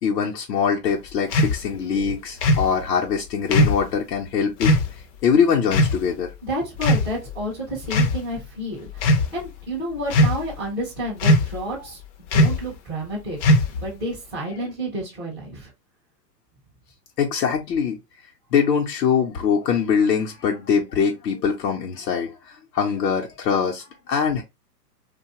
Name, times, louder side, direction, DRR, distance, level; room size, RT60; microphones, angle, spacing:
voice 1, 0.0-4.7 5.2-6.3 17.2-18.0 18.5-24.4, left 6 dB, 75° left, 0.8 m, -23 dB
sound 1, 1.3-1.6 2.4-2.7 3.5-3.8 4.6-4.9 5.7-6.0 6.8-7.3 7.9-8.2 8.9-9.3 10.1-10.5 11.2-11.6 12.3-12.7 13.4-13.9, left 1 dB, 45° left, 0.5 m, -18 dB
voice 2, 6.4-12.0 12.3-13.4 13.7-15.7, right 1 dB, 5° right, 0.3 m, -30 dB
2.7 x 2.3 x 2.9 m
hypercardioid pair, 125°, 49 cm